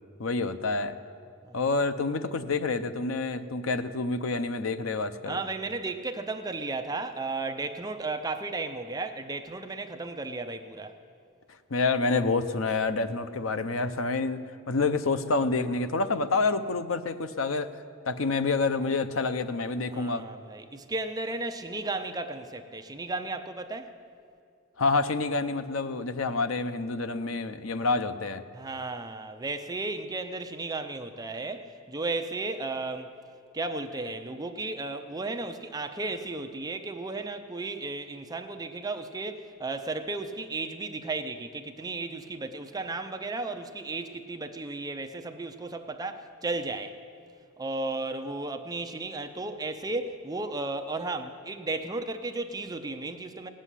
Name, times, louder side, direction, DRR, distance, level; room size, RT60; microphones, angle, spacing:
voice 1, 0.2-1.0 1.5-5.4 11.7-17.7 18.0-20.3 24.8-28.4, left 3 dB, 75° left, 10 dB, 0.7 m, -28 dB
voice 2, 5.3-10.9 19.9-23.9 28.5-33.2 33.5-47.0 47.6-53.5, right 3 dB, 20° right, 6 dB, 0.6 m, -34 dB
17.5 x 7.6 x 10.0 m, 2.4 s
head